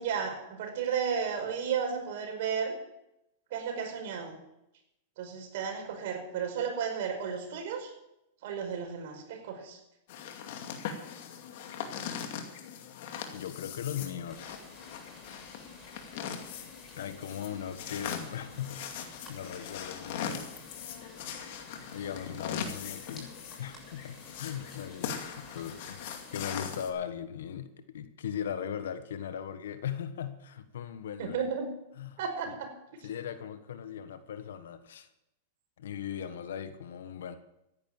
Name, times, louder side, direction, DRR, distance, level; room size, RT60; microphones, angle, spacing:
voice 1, 0.0-2.8 3.5-4.4 5.2-7.9 8.4-9.8 31.2-31.7 32.2-32.7, right 7 dB, 65° right, 3 dB, 5.2 m, -33 dB
sound 1, 10.1-26.9, left 8 dB, 60° left, 2.4 m, -40 dB
voice 2, 13.3-14.4 17.0-20.5 21.9-23.3 23.6-26.0 26.3-31.4 32.0-32.2 32.5-32.6 33.0-35.1 35.8-37.4, left 9 dB, 80° left, 10 dB, 1.4 m, -39 dB
sound 2, 14.3-26.4, equal, 15° left, 7.4 m, -54 dB
14.0 x 10.5 x 7.2 m, 0.87 s
hypercardioid pair, 130°, 0 cm